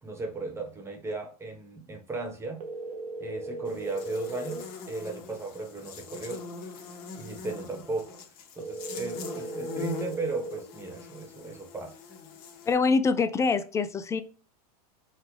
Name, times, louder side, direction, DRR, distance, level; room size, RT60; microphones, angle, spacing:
voice 1, 0.0-2.7 3.2-6.4 7.2-8.2 8.5-12.0, right 3 dB, 15° right, 1.2 m, -36 dB
sound 1, 2.6-4.6 8.6-10.6, right 2 dB, 90° right, 0.8 m, -37 dB
Buzz, 3.7-12.7, left 4 dB, 50° left, 1.2 m, -42 dB
voice 2, 12.7-14.2, left 4 dB, 15° left, 0.4 m, -24 dB
5.5 x 2.4 x 3.2 m
hypercardioid pair, 115°, 20 cm